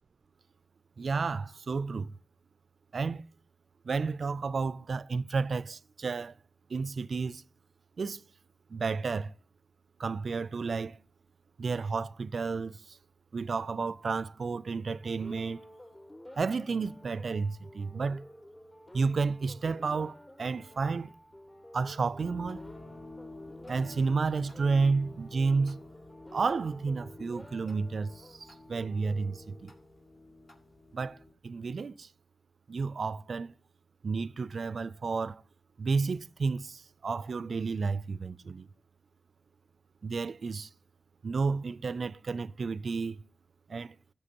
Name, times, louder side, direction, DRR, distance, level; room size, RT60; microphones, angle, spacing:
voice 1, 1.0-2.1 2.9-3.2 3.8-6.3 6.7-7.4 8.0-8.2 8.7-9.3 10.0-11.0 11.6-13.0 13.3-15.6 16.4-18.2 18.9-21.1 21.7-22.6 23.7-25.8 26.3-29.7 30.9-31.2 31.4-32.1 32.7-33.5 34.0-35.4 35.8-38.7 40.0-40.7 41.2-43.2 43.7-44.0, right 4 dB, 60° right, 0.3 m, -31 dB
sound 1, 14.9-30.2, left 1 dB, 15° left, 4.5 m, -52 dB
sound 2, 22.2-31.3, left 2 dB, 50° left, 2.1 m, -50 dB
16.0 x 6.8 x 2.9 m
wide cardioid pair, 95°, 0 cm